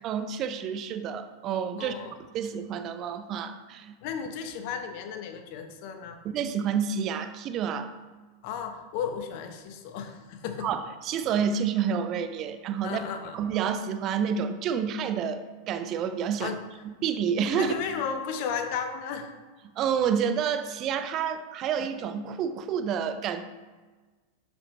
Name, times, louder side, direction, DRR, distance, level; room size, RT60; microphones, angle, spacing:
voice 1, 0.0-1.9 2.3-3.9 6.2-7.9 10.6-13.0 13.3-16.6 16.8-17.8 19.8-23.4, right 7 dB, 35° right, 10 dB, 0.6 m, -29 dB
voice 2, 1.8-2.1 4.0-6.2 8.4-10.7 12.8-13.4 16.4-16.6 17.6-19.3, left 7 dB, 45° left, 7 dB, 0.9 m, -34 dB
12.5 x 5.2 x 3.1 m, 1.3 s
figure-of-eight pair, 90°, 0 cm